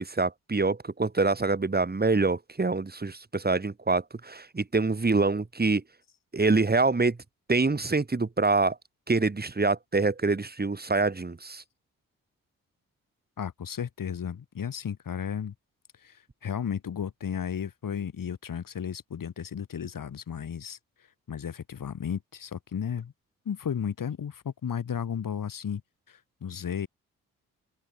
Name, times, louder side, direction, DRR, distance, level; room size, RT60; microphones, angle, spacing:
voice 1, 0.0-5.8 6.3-7.2 7.5-8.8 9.1-11.6, right 3 dB, 25° right, 2.4 m, -25 dB
voice 2, 13.4-15.5 16.0-20.8 21.3-23.1 23.4-25.8 26.1-26.9, left 8 dB, 65° left, 4.3 m, -34 dB
open air
supercardioid pair, 45°, 36 cm